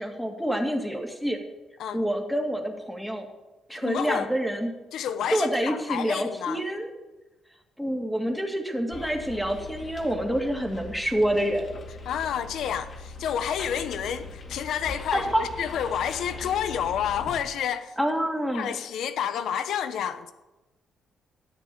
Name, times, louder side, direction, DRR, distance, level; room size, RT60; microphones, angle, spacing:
voice 1, 0.0-1.4 1.9-3.3 3.7-4.7 5.3-6.9 7.8-11.7 15.1-15.4 18.0-18.7, equal, ahead, 2.3 m, -27 dB
voice 2, 3.7-4.3 4.9-6.6 12.1-17.9 18.5-20.3, left 9 dB, 75° left, 1.0 m, -29 dB
Bus, 8.9-17.4, left 3 dB, 45° left, 2.2 m, -41 dB
13.0 x 9.4 x 7.0 m
cardioid pair, 90°, 0 cm